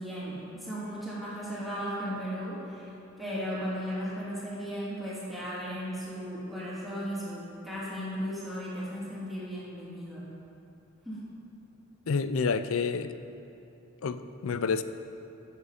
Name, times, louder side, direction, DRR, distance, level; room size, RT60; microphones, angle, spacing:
voice 1, 0.0-10.3 11.0-11.3, equal, ahead, -9 dB, 2.8 m, -36 dB
voice 2, 12.1-13.1 14.0-14.8, left 5 dB, 70° left, 12 dB, 0.5 m, -29 dB
15.0 x 7.3 x 5.0 m, 2.8 s
head